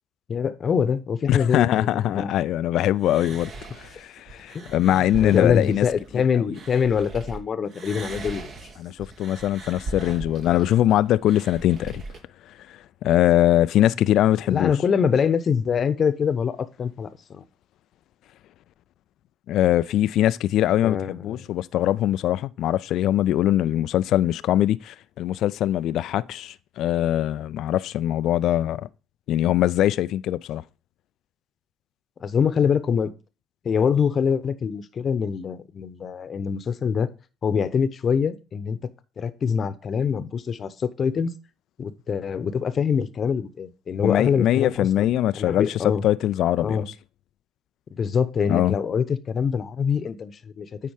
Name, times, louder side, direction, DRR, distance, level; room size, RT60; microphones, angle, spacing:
voice 1, 0.3-2.3 4.5-8.5 14.5-17.4 20.8-21.5 32.2-33.1 33.6-37.1 37.4-38.8 39.2-41.3 41.8-46.0 46.6-46.9 47.9-50.7, left 6 dB, 45° left, 0.8 m, -24 dB
voice 2, 1.3-3.5 3.8-5.9 8.8-12.0 13.0-14.7 19.5-28.9 29.3-30.6 44.0-46.9 48.5-48.7, left 12 dB, 65° left, 0.3 m, -22 dB
sound 1, 3.0-7.4 7.7-12.2, right 2 dB, 55° right, 1.7 m, -39 dB
9.2 x 4.3 x 4.9 m
hypercardioid pair, 60°, 0 cm